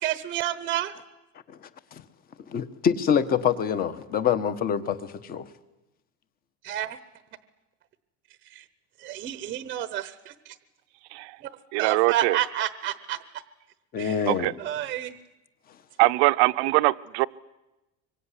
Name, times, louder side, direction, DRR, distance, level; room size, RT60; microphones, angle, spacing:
voice 1, 0.0-0.9 6.6-7.0 9.0-10.3 11.8-13.2 14.0-14.1 14.6-15.1, right 12 dB, 25° right, 0.9 m, -29 dB
voice 2, 1.5-2.0 2.5-5.5 13.9-14.6, left 7 dB, 25° left, 1.3 m, -26 dB
voice 3, 11.7-12.4 14.3-14.5 16.0-17.3, right 22 dB, 65° right, 0.9 m, -22 dB
25.5 x 23.5 x 9.9 m
cardioid pair, 180°, 34 cm